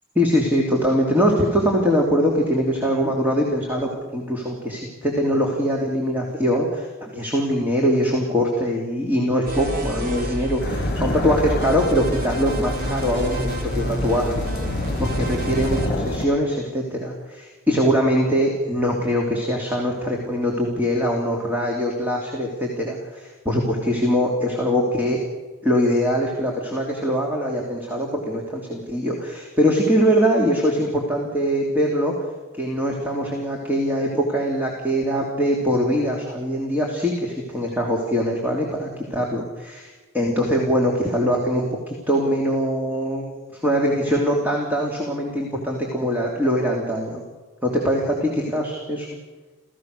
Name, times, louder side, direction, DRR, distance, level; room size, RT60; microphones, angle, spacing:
voice 1, 0.1-25.2 25.6-32.1 32.6-47.2 47.6-49.1, equal, 10° right, -1 dB, 3.1 m, -22 dB
sound 1, 9.5-15.9, equal, 45° right, 3.8 m, -28 dB
sound 2, 10.6-16.3, left 1 dB, 50° left, 3.4 m, -29 dB
29.0 x 16.0 x 6.7 m, 1.3 s
head